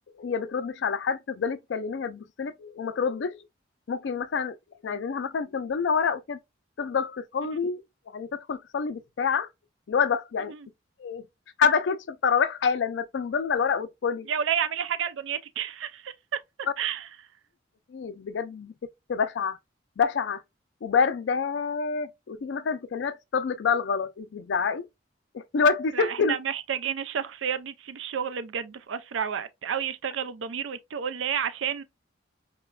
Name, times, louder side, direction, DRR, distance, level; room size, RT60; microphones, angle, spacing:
voice 1, 0.2-3.4 3.9-4.6 4.8-6.4 6.8-7.8 8.1-9.5 9.9-10.5 11.0-11.3 11.6-14.3 17.9-18.7 19.1-19.6 20.0-20.4 20.8-24.9 25.3-26.4, left 6 dB, 70° left, 0.4 m, -27 dB
voice 2, 14.3-16.1 16.8-17.1 25.9-31.8, right 8 dB, 90° right, 0.4 m, -30 dB
4.8 x 2.2 x 2.2 m
head